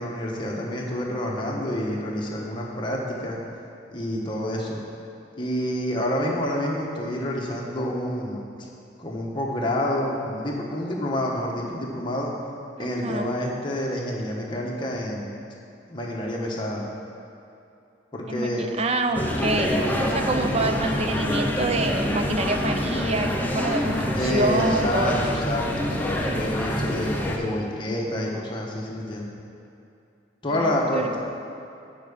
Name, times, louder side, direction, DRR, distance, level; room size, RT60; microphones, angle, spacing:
voice 1, 0.0-3.4 3.9-4.8 5.4-8.4 9.0-12.3 12.8-15.3 15.9-16.9 18.1-18.7 24.1-29.3 30.4-31.2, left 1 dB, 25° left, -2 dB, 1.2 m, -28 dB
voice 2, 12.8-13.3 18.3-19.8 20.1-25.4 30.5-31.2, right 2 dB, 35° right, 6 dB, 0.5 m, -26 dB
sound 1, 19.1-27.4, equal, 10° left, 0.6 m, -26 dB
8.9 x 4.8 x 7.1 m, 2.7 s
head